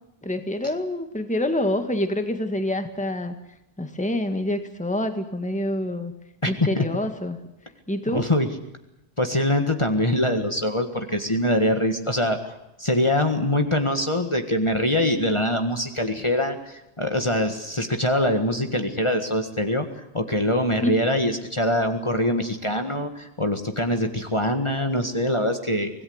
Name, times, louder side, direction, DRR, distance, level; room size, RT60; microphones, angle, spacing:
voice 1, 0.2-3.3 3.8-6.1 6.5-7.4 7.9-8.2 20.8-21.0, left 1 dB, 5° left, 7 dB, 1.7 m, -26 dB
voice 2, 6.4-6.8 8.1-8.5 9.2-25.9, left 1 dB, 25° left, 5 dB, 1.8 m, -24 dB
25.5 x 18.0 x 8.0 m, 0.92 s
omnidirectional pair, 1.2 m